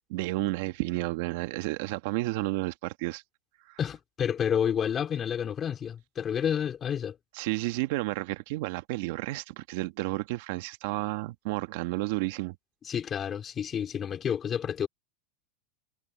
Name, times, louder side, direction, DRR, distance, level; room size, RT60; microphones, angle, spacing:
voice 1, 0.0-3.2 3.7-3.8 7.3-12.5, right 20 dB, 60° right, 1.4 m, -31 dB
voice 2, 3.8-7.2 12.8-14.9, left 8 dB, 25° left, 3.8 m, -30 dB
supercardioid pair, 140°, 0 cm